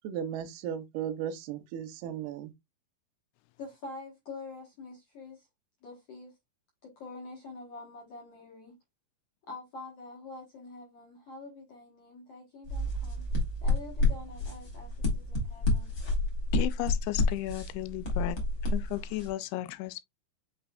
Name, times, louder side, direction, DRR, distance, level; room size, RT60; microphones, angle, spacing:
voice 1, 0.0-2.5, right 9 dB, 85° right, 2.5 m, -36 dB
voice 2, 3.6-5.5 5.8-6.3 6.8-8.8 9.5-13.2 13.6-15.9, left 3 dB, 65° left, 1.5 m, -46 dB
sound 1, 12.7-19.3, left 2 dB, 45° left, 1.1 m, -29 dB
voice 3, 16.5-18.4 18.7-20.0, left 17 dB, 90° left, 2.6 m, -34 dB
5.8 x 4.0 x 2.2 m
omnidirectional pair, 4.5 m